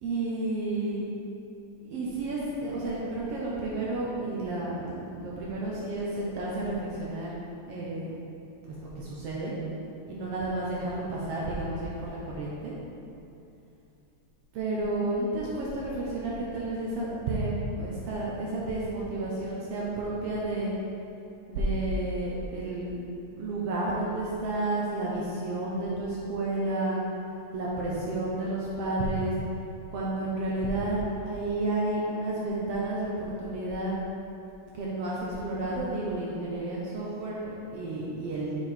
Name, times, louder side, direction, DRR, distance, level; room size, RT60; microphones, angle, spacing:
voice 1, 0.0-1.0 1.8-7.3 7.7-8.1 9.0-9.5 10.1-12.7 14.5-20.7 21.5-23.0 23.4-27.0 27.5-29.3 29.9-33.9 34.7-38.5, right 2 dB, 75° right, -5 dB, 1.4 m, -31 dB
6.9 x 4.4 x 4.3 m, 2.7 s
omnidirectional pair, 3.6 m